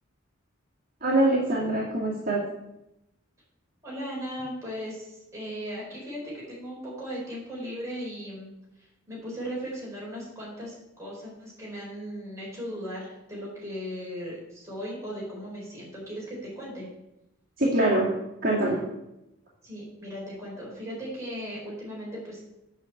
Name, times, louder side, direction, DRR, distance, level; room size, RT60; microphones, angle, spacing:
voice 1, 1.0-2.4 17.6-18.1 18.4-18.8, right 1 dB, 45° right, -6 dB, 2.1 m, -23 dB
voice 2, 3.8-8.5 8.8-16.9 19.6-22.4, equal, 15° right, -6 dB, 4.5 m, -37 dB
8.9 x 5.8 x 7.8 m, 0.90 s
head